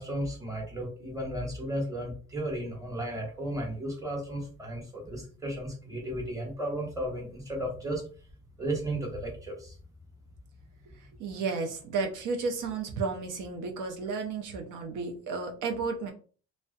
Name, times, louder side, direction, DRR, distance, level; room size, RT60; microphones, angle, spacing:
voice 1, 0.0-8.0 8.6-9.7, right 1 dB, 10° right, -1 dB, 1.1 m, -34 dB
voice 2, 11.2-16.1, right 4 dB, 85° right, 3 dB, 0.6 m, -32 dB
2.3 x 2.1 x 2.5 m, 0.40 s
cardioid pair, 90°, 30 cm